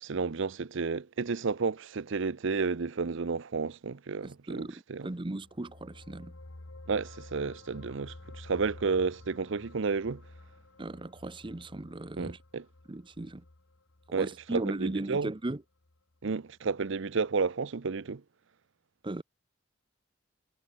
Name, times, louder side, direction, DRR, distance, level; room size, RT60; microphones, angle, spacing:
voice 1, 0.0-5.1 6.9-10.2 12.2-12.6 14.1-15.3 16.2-18.2, right 4 dB, 65° right, 0.6 m, -31 dB
voice 2, 4.2-6.4 10.8-12.4 12.9-13.4 14.2-15.6 19.0-19.2, right 2 dB, 25° right, 0.7 m, -37 dB
sound 1, 5.2-16.0 16.3-16.5, left 2 dB, 70° left, 1.6 m, -51 dB
head